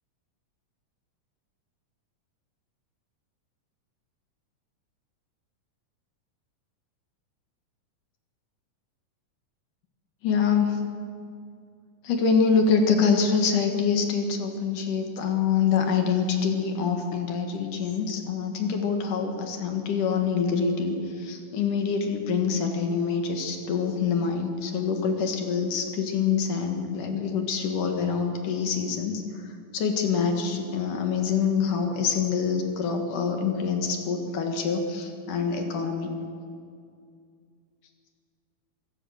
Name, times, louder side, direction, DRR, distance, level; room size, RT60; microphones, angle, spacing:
voice 1, 10.2-10.8 12.0-29.2 29.7-36.1, left 6 dB, 70° left, 4 dB, 3.3 m, -25 dB
25.5 x 15.5 x 6.5 m, 2.2 s
omnidirectional pair, 3.8 m